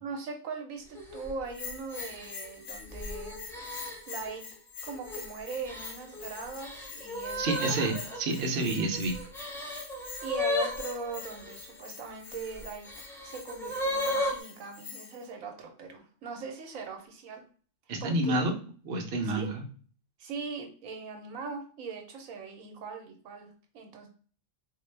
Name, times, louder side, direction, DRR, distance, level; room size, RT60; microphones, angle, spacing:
voice 1, 0.0-3.4 4.1-4.4 4.8-7.8 10.2-12.9 13.2-17.4 18.0-18.5 19.2-19.5 20.2-24.1, right 5 dB, 80° right, 3 dB, 1.1 m, -40 dB
sound 1, 0.9-1.3 1.9-4.3 4.9-5.3 5.7-11.5 12.3-14.4, left 1 dB, 5° left, 0.4 m, -35 dB
Bell, 1.5-15.3, left 6 dB, 85° left, 1.1 m, -46 dB
voice 2, 7.4-9.2 17.9-18.5 18.9-19.6, right 2 dB, 55° right, 2 dB, 0.8 m, -29 dB
3.8 x 2.2 x 3.2 m, 0.43 s
omnidirectional pair, 1.4 m